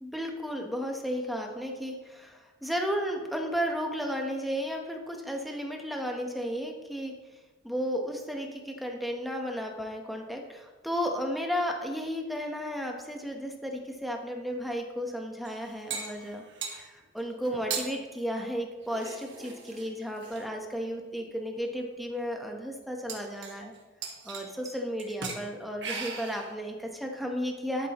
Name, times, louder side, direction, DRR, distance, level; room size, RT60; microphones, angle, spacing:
voice 1, 0.0-7.1 7.6-16.4 16.8-23.7 24.2-27.9, equal, ahead, 2 dB, 1.0 m, -33 dB
sound 1, 15.4-16.8 17.4-17.9 18.8-20.4 21.3-21.4 21.8-21.9 22.1-22.2 23.1-23.8 24.0-24.7 25.0-25.4 25.8-26.5, right 5 dB, 60° right, 1.5 m, -38 dB
12.0 x 8.3 x 3.0 m, 1.2 s
head